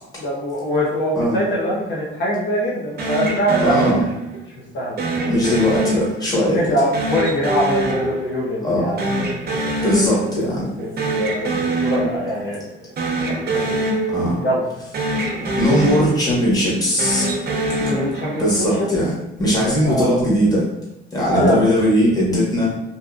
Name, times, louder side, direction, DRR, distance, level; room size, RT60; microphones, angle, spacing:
voice 1, 0.2-4.0 4.7-5.3 6.5-9.1 10.5-12.6 13.3-13.8 14.4-14.6 17.9-18.7 19.8-20.1 21.2-21.7, equal, 65° left, -5 dB, 0.7 m, -23 dB
sound 1, 3.0-4.5 5.0-6.5 6.9-8.7 9.0-10.5 10.8-12.5 12.9-14.7 14.9-16.5 16.9-18.7, right 1 dB, 50° right, 0.7 m, -24 dB
voice 2, 3.6-4.0 5.3-6.7 8.6-9.0 9.8-10.7 14.1-14.4 15.6-17.3 18.4-20.7 21.1-22.8, equal, 20° left, -7 dB, 1.3 m, -19 dB
2.8 x 2.4 x 2.4 m, 0.89 s
cardioid pair, 90°, 20 cm